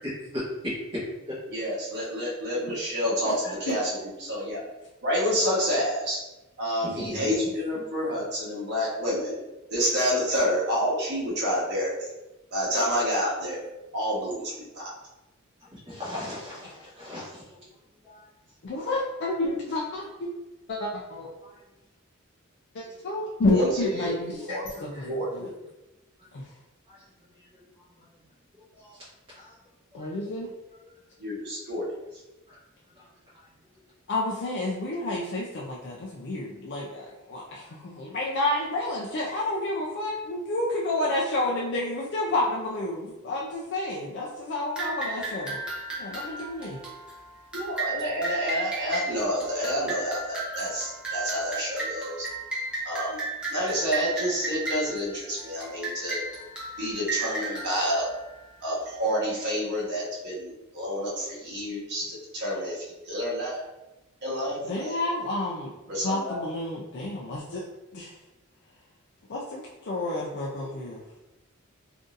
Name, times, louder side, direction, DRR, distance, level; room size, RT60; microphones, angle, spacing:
voice 1, 1.5-4.6 5.0-6.2 6.6-9.4 9.7-12.1 12.5-13.6 13.9-14.9 23.5-24.6 25.1-25.3 31.2-31.8 47.5-52.3 52.8-53.2 53.5-56.2 56.8-58.0 58.6-63.6 64.2-65.0 65.9-66.4 70.5-70.8, equal, 55° right, -6 dB, 1.2 m, -29 dB
voice 2, 3.3-3.7 18.6-20.3 20.7-21.3 22.7-25.5 26.3-26.5 29.9-30.5 34.1-45.6 46.0-46.8 64.6-65.7 66.0-67.6 67.9-68.1 69.3-71.0, left 2 dB, 55° left, -3 dB, 0.4 m, -30 dB
voice 3, 15.9-17.3 18.0-18.1 32.5-32.6, left 1 dB, 25° right, -11 dB, 1.2 m, -36 dB
sound 1, 44.8-58.9, right 2 dB, 5° right, 0.9 m, -34 dB
3.8 x 2.6 x 2.5 m, 1.0 s
head